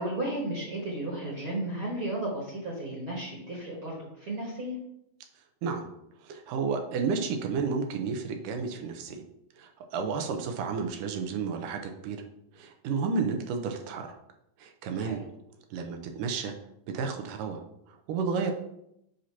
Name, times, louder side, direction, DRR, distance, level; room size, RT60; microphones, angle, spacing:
voice 1, 0.0-4.8 15.0-15.2, right 1 dB, 50° right, -4 dB, 1.9 m, -34 dB
voice 2, 6.2-9.2 9.6-12.2 12.5-14.2 14.6-15.2 15.7-16.5 16.9-17.6 17.9-18.5, right 5 dB, 85° right, 5 dB, 2.3 m, -32 dB
7.8 x 2.9 x 5.7 m, 0.78 s
omnidirectional pair, 3.8 m